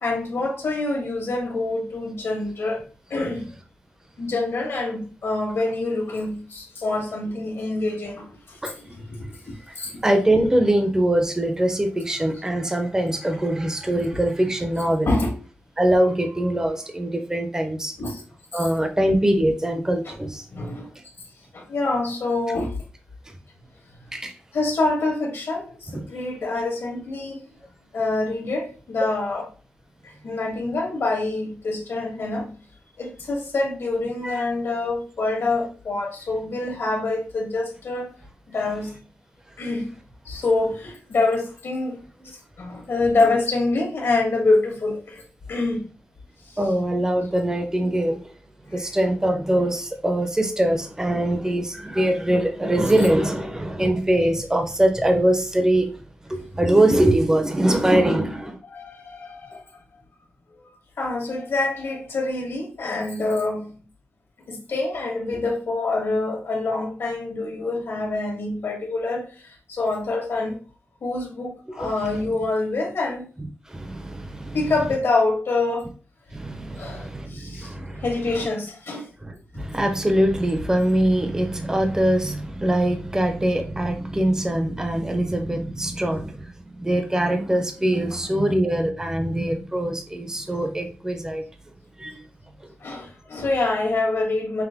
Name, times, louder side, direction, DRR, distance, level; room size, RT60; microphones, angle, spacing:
voice 1, 0.0-2.8 3.1-3.5 4.2-8.6 8.8-9.9 15.1-15.3 18.0-18.2 18.5-18.7 20.0-20.1 20.5-20.9 21.5-22.7 24.5-27.4 27.9-29.5 30.0-32.6 33.0-38.1 38.5-39.0 39.6-39.9 40.2-41.9 42.2-45.2 45.5-45.8 46.5-46.6 58.7-59.6 60.5-60.7 61.0-63.8 64.5-70.6 71.0-73.3 74.5-75.9 76.7-77.7 78.0-79.1 92.8-94.6, left 2 dB, 75° left, 1.5 m, -26 dB
voice 2, 10.0-15.1 15.8-18.0 18.5-20.4 24.1-24.3 25.9-26.0 34.2-34.4 46.6-48.2 48.7-55.9 56.3-58.6 71.8-71.9 73.7-74.6 76.3-78.1 79.2-91.4 92.0-92.2, right 1 dB, 15° right, 0.7 m, -22 dB
5.8 x 2.1 x 3.5 m
wide cardioid pair, 90°, 4 cm